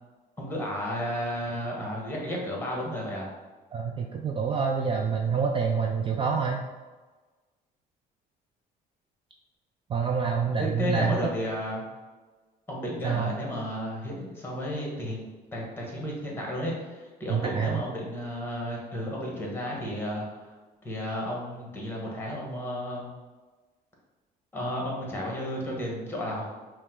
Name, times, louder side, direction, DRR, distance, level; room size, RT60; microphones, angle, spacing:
voice 1, 0.4-3.3 10.5-11.8 12.7-20.5 20.8-23.1 24.5-26.5, equal, 15° left, -2 dB, 1.2 m, -33 dB
voice 2, 3.7-6.6 9.9-11.2 13.0-13.3 17.3-17.8, right 6 dB, 30° right, 1 dB, 0.4 m, -27 dB
5.4 x 2.1 x 3.7 m, 1.3 s
cardioid pair, 110°, 17 cm